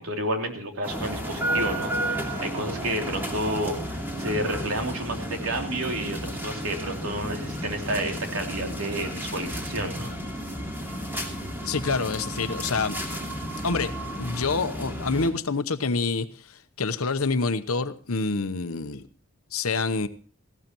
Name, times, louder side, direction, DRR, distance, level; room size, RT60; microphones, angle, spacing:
voice 1, 0.0-10.1, right 1 dB, 75° right, 2 dB, 3.1 m, -30 dB
sound 1, 0.8-15.3, equal, 10° right, 2.8 m, -32 dB
voice 2, 11.6-13.0 13.6-13.9 14.2-19.1 19.5-20.1, left 4 dB, 80° left, 11 dB, 1.0 m, -27 dB
18.5 x 16.0 x 3.0 m, 0.40 s
head